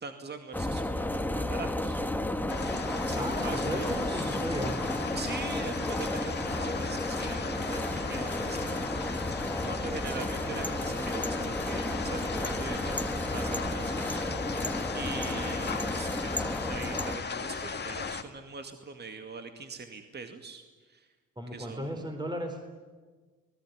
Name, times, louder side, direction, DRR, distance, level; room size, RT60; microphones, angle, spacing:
voice 1, 0.0-2.0 3.1-4.4 5.1-13.0 13.3-14.7 14.9-21.1 21.5-22.0, right 4 dB, 35° right, 6 dB, 2.2 m, -43 dB
sound 1, 0.5-17.2, left 1 dB, 5° left, 1.6 m, -32 dB
sound 2, 2.5-18.2, left 5 dB, 35° left, 2.0 m, -37 dB
voice 2, 3.2-4.8 21.4-22.8, right 1 dB, 15° right, 4 dB, 4.2 m, -35 dB
29.0 x 20.0 x 9.5 m, 1.4 s
cardioid pair, 90°, 30 cm